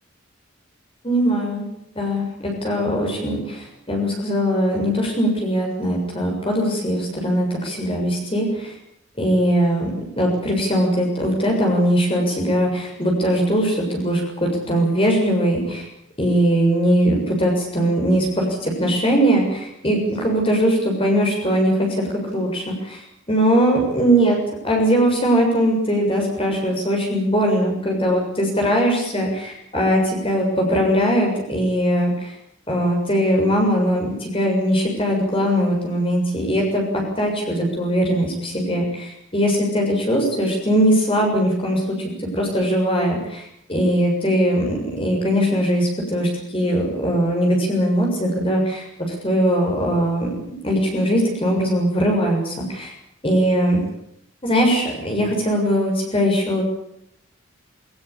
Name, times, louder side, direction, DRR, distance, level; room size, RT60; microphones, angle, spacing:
voice 1, 1.0-1.6 2.0-8.7 9.2-15.9 16.2-24.4 24.6-32.3 32.7-36.8 37.2-41.8 42.2-50.3 50.6-52.9 53.2-53.8 54.4-56.7, equal, 25° left, 1 dB, 6.8 m, -20 dB
21.5 x 20.5 x 8.6 m, 0.75 s
head